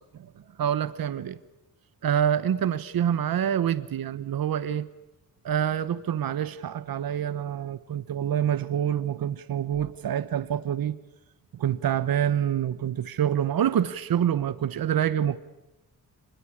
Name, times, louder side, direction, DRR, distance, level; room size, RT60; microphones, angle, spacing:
voice 1, 0.6-1.4 2.0-4.9 5.4-11.0 11.5-15.4, right 9 dB, 90° right, 15 dB, 1.0 m, -26 dB
29.0 x 21.5 x 8.6 m, 1.0 s
wide cardioid pair, 135°, 34 cm